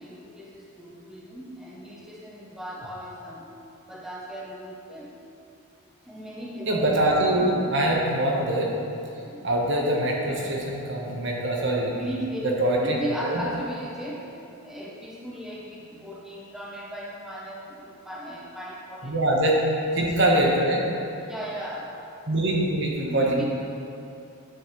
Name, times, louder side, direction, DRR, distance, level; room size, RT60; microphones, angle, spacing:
voice 1, 0.0-3.5 3.9-5.1 6.0-6.7 9.2-9.4 11.9-12.5 12.8-14.3 14.6-19.1 21.2-21.9 23.1-23.4, equal, ahead, -5 dB, 0.8 m, -36 dB
voice 2, 6.7-8.9 9.4-12.0 12.4-13.4 19.0-19.7 19.9-20.9 22.3-23.4, right 1 dB, 55° right, -2 dB, 1.2 m, -23 dB
10.5 x 7.0 x 3.2 m, 2.7 s
head